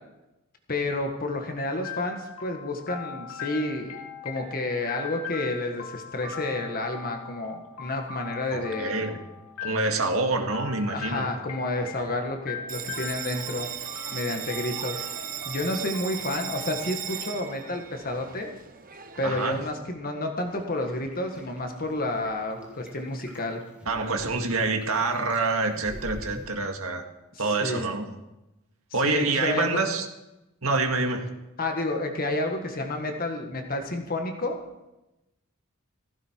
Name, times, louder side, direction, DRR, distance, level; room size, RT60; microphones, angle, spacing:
voice 1, 0.7-9.0 10.9-13.7 14.1-15.0 15.5-18.5 19.2-23.6 27.4-27.9 29.0-29.8 31.6-34.6, left 2 dB, 45° left, 4 dB, 1.6 m, -30 dB
sound 1, 1.8-17.6, left 7 dB, 70° left, 2.5 m, -41 dB
voice 2, 8.5-9.2 9.6-11.3 19.2-19.6 23.9-27.0 27.4-28.1 28.9-30.1 30.6-31.3, right 3 dB, 75° right, 4 dB, 2.0 m, -26 dB
Bell, 12.7-19.7, right 9 dB, 40° right, 0.9 m, -37 dB
sound 2, 20.4-26.4, equal, 5° right, 2.8 m, -45 dB
16.0 x 15.0 x 4.6 m, 0.97 s
head